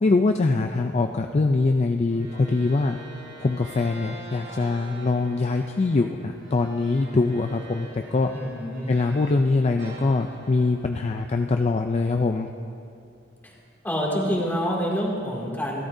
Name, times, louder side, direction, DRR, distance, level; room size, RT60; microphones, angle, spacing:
voice 1, 0.0-3.0 3.4-8.3 8.9-12.5, left 3 dB, 35° left, 5 dB, 0.4 m, -23 dB
sound 1, 2.0-9.4 9.8-12.2, right 2 dB, 65° right, 3.6 m, -45 dB
voice 2, 8.3-8.9 13.4-13.5 13.8-15.8, equal, 10° left, -3 dB, 2.4 m, -27 dB
27.5 x 12.5 x 2.7 m, 2.5 s
head